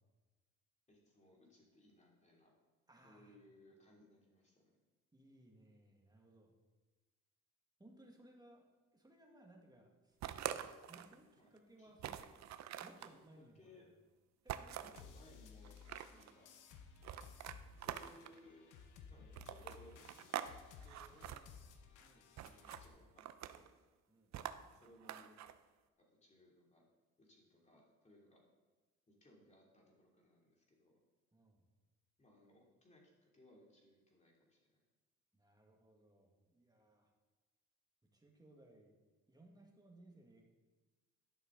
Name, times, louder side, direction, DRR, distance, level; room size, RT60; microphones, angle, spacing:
voice 1, 0.9-2.5 3.0-4.6 11.4-11.5 11.8-11.9 12.8-14.0 14.7-16.5 17.7-18.7 19.0-21.4 22.1-23.7 24.4-25.4 26.2-26.8 27.2-28.4 29.1-31.0 32.2-34.8, left 1 dB, 25° left, -2 dB, 2.9 m, -65 dB
voice 2, 2.9-3.4 5.1-6.5 7.8-8.7 8.9-10.2 10.8-12.3 12.8-13.7 14.4-14.9 16.1-16.4 22.0-22.3 24.1-24.4 31.3-31.7 35.4-37.1 38.0-38.9 39.3-40.4, right 1 dB, 15° right, 0 dB, 1.8 m, -63 dB
sound 1, 10.2-11.2 11.6-11.7 12.0-13.1 14.5-15.0 15.6-16.3 17.0-18.4 19.3-20.5 20.8-21.4 22.4-22.8 23.2-23.7 24.3-25.5, right 11 dB, 65° right, 0.6 m, -45 dB
sound 2, 15.0-22.9, left 6 dB, 85° left, 0.9 m, -58 dB
11.5 x 6.4 x 3.9 m, 1.3 s
cardioid pair, 90°, 30 cm